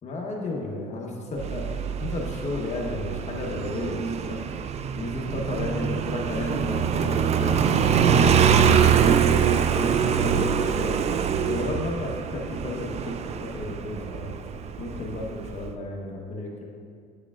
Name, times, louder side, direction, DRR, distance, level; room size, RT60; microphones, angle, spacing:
voice 1, 0.0-1.7 2.0-4.4 4.9-11.0 11.4-14.4 14.8-16.7, left 2 dB, 40° left, -1 dB, 1.1 m, -33 dB
Motorcycle, 1.4-15.7, right 7 dB, 40° right, 0.3 m, -24 dB
9.7 x 6.7 x 2.4 m, 2.2 s
cardioid pair, 110°, 17 cm